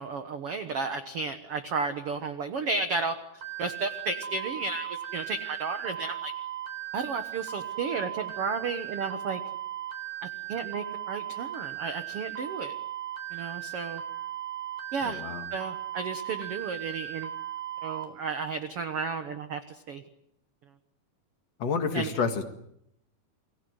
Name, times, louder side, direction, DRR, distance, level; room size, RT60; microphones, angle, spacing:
voice 1, 0.0-3.2 3.6-6.3 6.9-9.4 10.2-12.7 13.3-14.0 14.9-15.2 15.5-17.3 17.8-20.0 21.9-22.1, right 4 dB, 60° right, 9 dB, 1.5 m, -33 dB
sound 1, 3.4-18.0, right 12 dB, 85° right, 6.0 m, -37 dB
voice 2, 15.0-15.5 21.6-22.4, left 5 dB, 50° left, 7 dB, 2.7 m, -29 dB
29.0 x 21.0 x 8.0 m, 0.76 s
omnidirectional pair, 4.3 m